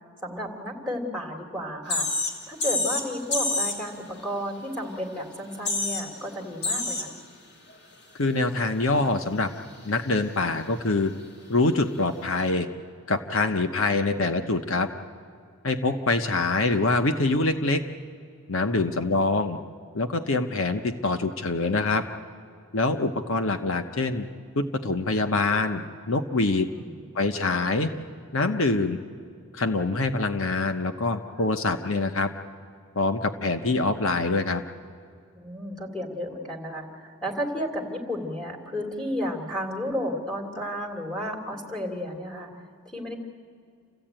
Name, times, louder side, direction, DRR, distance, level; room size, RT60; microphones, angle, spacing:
voice 1, 0.2-2.1 2.5-7.2 18.7-18.8 26.7-27.1 31.3-31.4 35.4-43.2, equal, 5° left, -1 dB, 2.9 m, -33 dB
sound 1, 1.9-2.3 2.6-3.1 3.3-3.8 5.2-5.3 5.5-6.0 6.6-7.1 7.7-7.8 12.4-12.5, left 3 dB, 50° left, 2.6 m, -27 dB
voice 2, 8.2-9.5 9.8-11.1 11.5-12.7 13.1-14.9 15.6-17.8 18.5-19.6 19.9-22.0 22.7-24.3 24.5-26.7 27.1-27.9 28.3-29.0 29.5-32.3 33.0-34.6, left 3 dB, 70° left, 7 dB, 0.9 m, -25 dB
28.5 x 15.0 x 8.9 m, 2.3 s
head